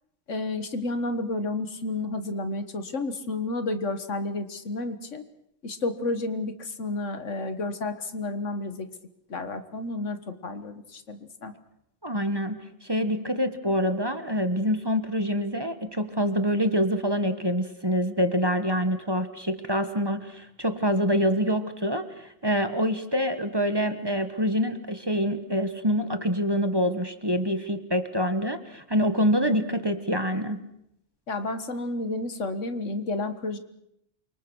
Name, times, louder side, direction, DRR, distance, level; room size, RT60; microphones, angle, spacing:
voice 1, 0.3-5.2 5.6-8.9 9.3-11.5 31.3-33.6, left 2 dB, 75° left, 9 dB, 1.9 m, -31 dB
voice 2, 12.0-30.6, equal, 20° right, 9 dB, 1.4 m, -26 dB
28.5 x 25.0 x 6.3 m, 0.78 s
omnidirectional pair, 1.3 m